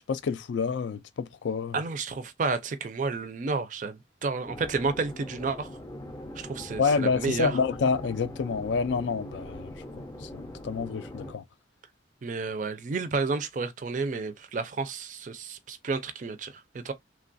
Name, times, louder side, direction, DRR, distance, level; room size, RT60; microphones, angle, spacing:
voice 1, 0.0-1.8 6.8-11.4, left 5 dB, 80° left, 0.4 m, -28 dB
voice 2, 1.7-5.7 6.4-7.6 12.2-16.9, right 4 dB, 45° right, 0.4 m, -31 dB
sound 1, 4.5-11.3, left 1 dB, 20° left, 0.5 m, -42 dB
3.2 x 2.3 x 2.5 m
head